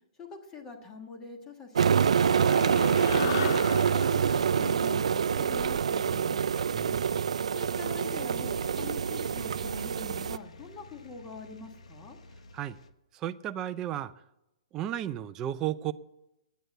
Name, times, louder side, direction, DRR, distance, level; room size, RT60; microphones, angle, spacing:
voice 1, 0.2-2.6 3.0-6.6 7.5-12.2, left 4 dB, 15° left, 1.5 m, -44 dB
sound 1, 1.8-10.4, right 7 dB, 90° right, 0.4 m, -26 dB
sound 2, 1.9-6.5, left 9 dB, 45° left, 0.4 m, -38 dB
voice 2, 6.7-7.1 12.5-12.8 13.1-14.1 14.7-15.9, right 12 dB, 15° right, 0.4 m, -33 dB
sound 3, 6.8-12.9, left 3 dB, 90° left, 1.0 m, -50 dB
10.0 x 9.3 x 7.7 m
hypercardioid pair, 170°, 3 cm